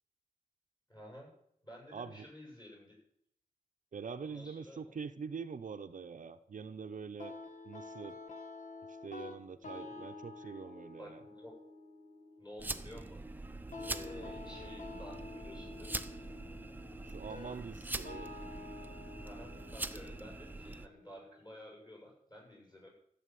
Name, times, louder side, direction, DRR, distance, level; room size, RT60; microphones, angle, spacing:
voice 1, 0.9-1.3 1.6-3.0 4.2-4.8 9.8-10.0 10.4-11.5 12.4-13.2 13.8-16.0 19.2-22.9, left 1 dB, 25° left, -1 dB, 7.8 m, -52 dB
voice 2, 1.9-2.3 3.9-7.4 7.6-8.2 8.9-11.2 14.2-14.3 17.0-18.3, right 5 dB, 60° right, 9 dB, 0.7 m, -44 dB
sound 1, 7.2-22.1, left 3 dB, 60° left, 1.5 m, -50 dB
sound 2, 12.6-20.9, right 2 dB, 10° right, 0.7 m, -43 dB
14.5 x 7.2 x 9.3 m, 0.70 s
wide cardioid pair, 130°, 15 cm